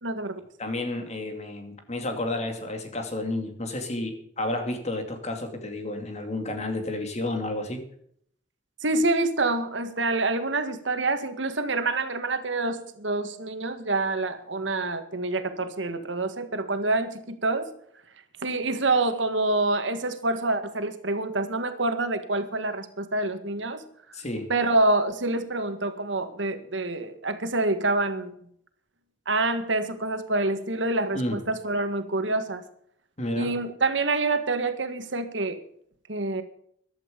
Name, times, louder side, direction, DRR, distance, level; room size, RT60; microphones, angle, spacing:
voice 1, 0.0-0.4 8.8-17.7 18.4-23.8 24.5-28.3 29.3-32.6 33.4-35.6 36.1-36.4, right 2 dB, 85° right, 8 dB, 1.7 m, -27 dB
voice 2, 0.6-7.8 24.1-24.5 31.1-31.4 33.2-33.5, left 1 dB, 35° left, 5 dB, 2.5 m, -31 dB
15.0 x 11.5 x 5.3 m, 0.66 s
head